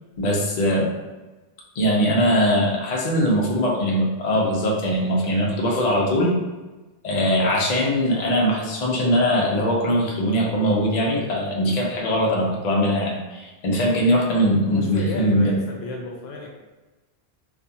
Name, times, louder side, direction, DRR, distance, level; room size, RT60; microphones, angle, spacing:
voice 1, 0.2-0.9 1.7-6.3 7.0-15.5, equal, 50° left, -3 dB, 0.5 m, -21 dB
voice 2, 14.7-16.5, left 2 dB, 75° left, -1 dB, 0.8 m, -32 dB
2.5 x 2.3 x 2.7 m, 1.1 s
omnidirectional pair, 1.1 m